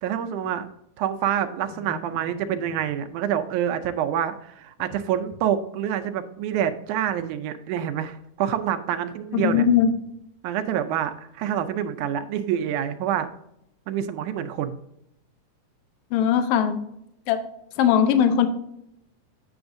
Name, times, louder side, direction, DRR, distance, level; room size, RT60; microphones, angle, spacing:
voice 1, 0.0-0.7 1.0-9.7 10.4-13.3 13.9-14.8, right 10 dB, 80° right, 7 dB, 2.0 m, -27 dB
voice 2, 9.3-9.9 16.1-16.8 17.3-17.4 17.8-18.5, left 8 dB, 80° left, 8 dB, 1.3 m, -19 dB
7.9 x 7.0 x 2.5 m, 0.80 s
omnidirectional pair, 3.6 m